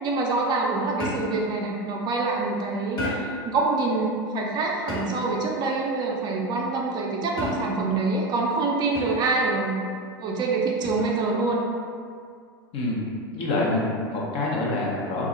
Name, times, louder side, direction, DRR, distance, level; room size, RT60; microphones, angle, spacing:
voice 1, 0.0-3.0 3.4-9.8 10.2-11.6, right 3 dB, 35° right, -1 dB, 0.5 m, -25 dB
sound 1, 1.0-1.5 3.0-3.5 4.9-5.4 7.4-7.9 8.9-9.4 10.8-11.2, left 1 dB, 30° left, 1.0 m, -31 dB
voice 2, 12.7-13.0 13.3-15.3, left 2 dB, 50° left, -4 dB, 0.7 m, -26 dB
2.3 x 2.0 x 3.7 m, 2.1 s
hypercardioid pair, 90°, 13 cm